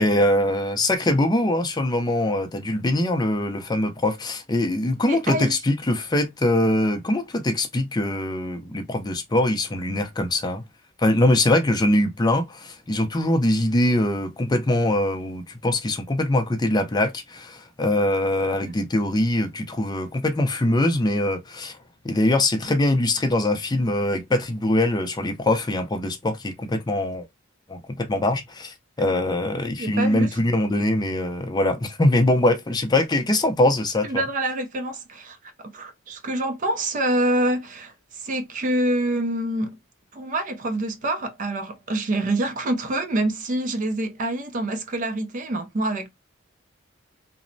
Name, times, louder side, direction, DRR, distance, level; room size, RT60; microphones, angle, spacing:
voice 1, 0.0-10.6 11.0-21.8 22.0-27.3 27.7-34.2, left 1 dB, 20° left, 0.5 m, -22 dB
voice 2, 5.0-5.6 18.6-18.7 29.8-30.4 34.0-39.8 40.1-46.1, right 1 dB, 40° right, 0.4 m, -26 dB
3.0 x 2.0 x 2.5 m
head